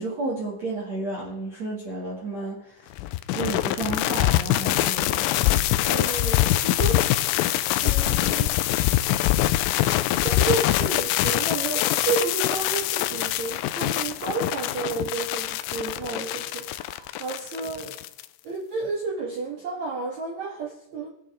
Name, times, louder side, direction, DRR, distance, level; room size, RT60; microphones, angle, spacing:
voice 1, 0.0-2.9 3.3-5.3, right 2 dB, 45° right, -4 dB, 2.4 m, -32 dB
sound 1, 3.0-18.3, left 15 dB, 85° left, 3.1 m, -24 dB
voice 2, 5.8-7.0 7.8-8.5 10.2-18.0 18.4-21.1, right 4 dB, 85° right, -1 dB, 1.5 m, -31 dB
23.0 x 9.2 x 3.6 m, 0.79 s
omnidirectional pair, 5.9 m